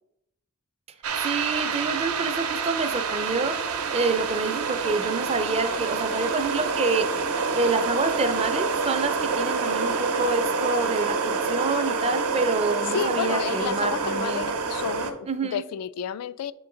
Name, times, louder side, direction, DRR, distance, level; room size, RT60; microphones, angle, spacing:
sound 1, 1.0-15.1, right 4 dB, 80° right, 0.7 m, -27 dB
voice 1, 1.2-3.5 3.9-7.1 7.5-14.5 15.3-15.6, right 3 dB, 25° right, 9 dB, 0.4 m, -27 dB
voice 2, 12.9-16.5, left 8 dB, 85° left, 17 dB, 0.3 m, -31 dB
7.6 x 3.8 x 3.8 m, 0.83 s
head